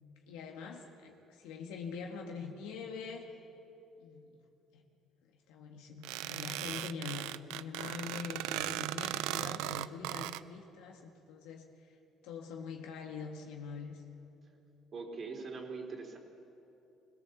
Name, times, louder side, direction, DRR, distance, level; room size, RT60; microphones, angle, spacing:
voice 1, 0.3-3.3 4.0-4.4 4.7-4.8 5.2-12.0 12.2-14.0, left 5 dB, 90° left, 1 dB, 1.6 m, -44 dB
sound 1, 6.0-10.4, right 16 dB, 90° right, 0.4 m, -37 dB
voice 2, 14.9-16.2, right 4 dB, 45° right, 2 dB, 3.5 m, -42 dB
21.5 x 17.0 x 7.2 m, 2.8 s
cardioid pair, 95°, 0 cm